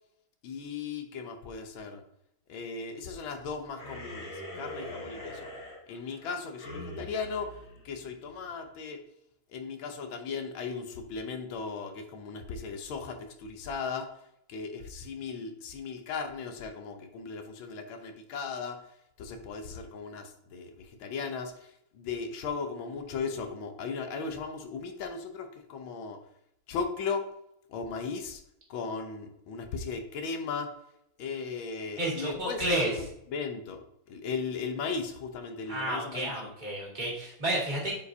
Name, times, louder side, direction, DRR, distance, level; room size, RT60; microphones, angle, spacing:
voice 1, 0.4-2.0 2.5-5.5 5.9-7.5 7.8-9.0 9.5-14.1 14.5-18.8 19.2-21.5 21.9-26.2 26.7-27.2 27.7-28.4 28.7-30.7 31.2-32.9 33.3-36.5, left 5 dB, 75° left, 6 dB, 1.6 m, -37 dB
sound 1, 3.7-8.5, left 1 dB, 50° left, 2.7 m, -43 dB
voice 2, 32.0-33.0 35.7-37.9, right 1 dB, 20° right, -4 dB, 2.0 m, -31 dB
8.0 x 4.8 x 2.7 m, 0.77 s
omnidirectional pair, 2.3 m